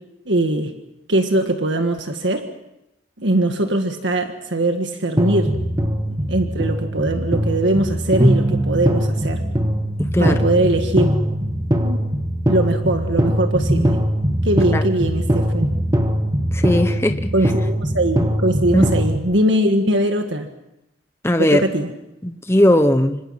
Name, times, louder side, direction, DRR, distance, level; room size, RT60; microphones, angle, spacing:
voice 1, 0.3-0.7 1.1-2.5 3.2-5.5 6.3-9.4 10.2-11.1 11.4-11.5 11.8-12.0 12.5-14.0 14.4-15.7 17.3-20.5 21.4-21.9, right 1 dB, 65° right, 5 dB, 1.8 m, -21 dB
sound 1, 5.2-19.2, equal, 20° right, 1.7 m, -21 dB
voice 2, 16.5-17.3 18.7-18.9 21.2-21.6 22.2-23.2, left 1 dB, 15° left, 8 dB, 1.0 m, -17 dB
27.0 x 26.0 x 5.9 m, 0.87 s
head